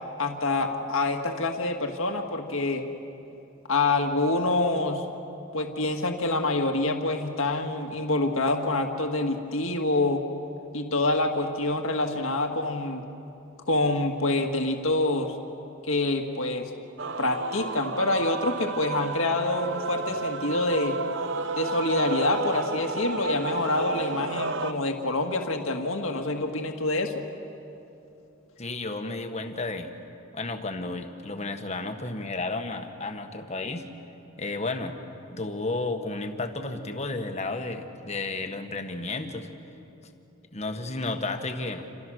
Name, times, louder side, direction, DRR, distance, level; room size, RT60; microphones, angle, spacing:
voice 1, 0.0-2.9 3.7-5.1 5.5-10.2 10.7-13.0 13.7-15.4 15.9-16.7 17.2-21.0 21.6-27.2, left 2 dB, 70° left, 3 dB, 1.8 m, -26 dB
Male singing / Female singing / Musical instrument, 17.0-24.7, right 3 dB, 55° right, 0.8 m, -32 dB
voice 2, 28.6-29.9 30.3-33.8 34.4-35.0 35.3-39.5 40.5-41.8, left 2 dB, 30° left, 5 dB, 1.5 m, -32 dB
29.0 x 27.0 x 6.4 m, 2.8 s
head